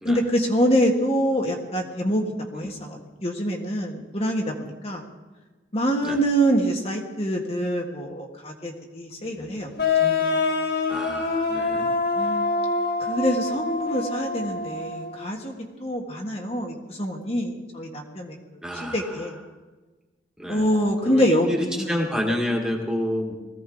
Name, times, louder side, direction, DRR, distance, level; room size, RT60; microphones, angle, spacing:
voice 1, 0.0-5.0 5.7-9.7 10.0-10.2 12.1-12.6 13.0-15.5 15.8-19.3 20.5-21.9, equal, 35° left, 0 dB, 1.5 m, -25 dB
voice 2, 9.2-9.6 10.9-11.9 18.6-19.3 20.4-20.8 21.0-23.3, left 1 dB, 5° right, -1 dB, 1.8 m, -29 dB
sound 1, 9.8-15.3, left 4 dB, 60° left, 2.5 m, -25 dB
20.5 x 15.5 x 3.9 m, 1.2 s
head